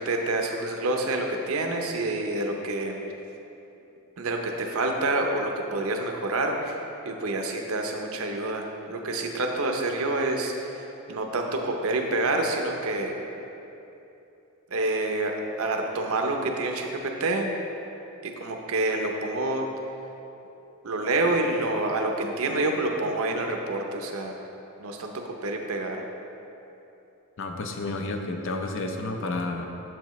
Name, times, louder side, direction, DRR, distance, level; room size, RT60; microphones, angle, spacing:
voice 1, 0.0-3.0 4.2-13.1 14.7-17.5 18.2-19.7 20.8-24.4 24.8-26.0, right 2 dB, 75° right, 2 dB, 0.7 m, -28 dB
voice 2, 27.4-29.7, left 2 dB, 60° left, 4 dB, 0.6 m, -31 dB
7.7 x 7.2 x 3.1 m, 2.9 s
head